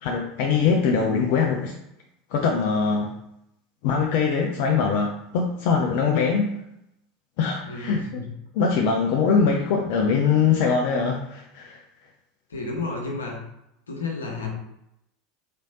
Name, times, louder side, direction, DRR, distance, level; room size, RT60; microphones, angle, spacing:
voice 1, 0.0-1.7 2.3-3.1 3.8-6.5 7.4-8.2 8.6-11.8, left 5 dB, 60° left, 1 dB, 0.5 m, -22 dB
voice 2, 7.6-8.2 12.5-13.4 13.9-14.5, left 3 dB, 80° left, -1 dB, 1.0 m, -31 dB
4.2 x 3.1 x 2.7 m, 0.81 s
figure-of-eight pair, 75°, 0 cm